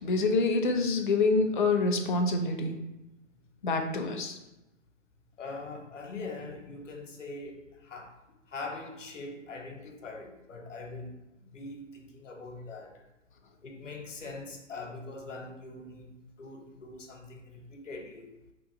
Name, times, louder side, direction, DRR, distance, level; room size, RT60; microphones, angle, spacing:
voice 1, 0.0-2.8 3.6-4.4, left 3 dB, 40° left, 5 dB, 0.4 m, -26 dB
voice 2, 5.4-8.2 8.5-11.1 11.4-13.0 13.6-18.3, left 3 dB, 70° left, 3 dB, 0.8 m, -42 dB
2.9 x 2.5 x 3.6 m, 0.98 s
figure-of-eight pair, 120°, 38 cm